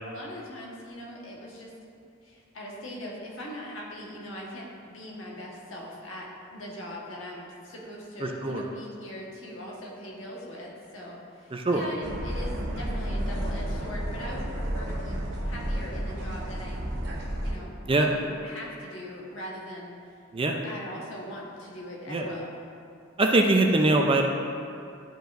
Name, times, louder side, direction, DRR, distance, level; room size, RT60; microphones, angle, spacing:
voice 1, 0.0-1.7 2.2-15.2 15.4-16.8 17.4-20.0 20.4-22.5, left 1 dB, 75° left, -3 dB, 1.4 m, -40 dB
voice 2, 8.2-8.6 11.5-11.9 17.9-18.1 20.3-20.6 22.1-22.3 23.2-24.3, right 2 dB, 25° right, 2 dB, 0.5 m, -23 dB
sound 1, 12.0-17.5, right 1 dB, 60° right, 0.9 m, -31 dB
11.5 x 5.2 x 2.6 m, 2.5 s
head